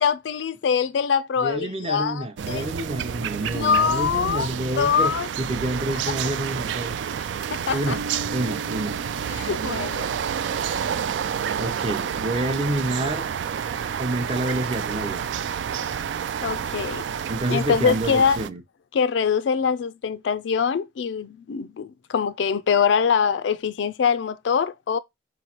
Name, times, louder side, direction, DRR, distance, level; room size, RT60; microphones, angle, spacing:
voice 1, 0.0-2.7 3.5-4.5 4.8-5.3 7.5-8.0 9.3-10.1 16.4-17.0 17.5-18.4 18.9-25.0, left 6 dB, 85° left, 0.4 m, -23 dB
voice 2, 1.4-6.9 7.7-8.0 8.3-9.0 11.6-13.2 14.0-15.3 17.3-18.6, right 1 dB, 35° right, 0.6 m, -28 dB
sound 1, 2.4-18.5, right 8 dB, 85° right, 0.3 m, -29 dB
Bass guitar, 7.8-11.3, right 1 dB, 65° right, 0.7 m, -39 dB
4.7 x 3.1 x 2.8 m
head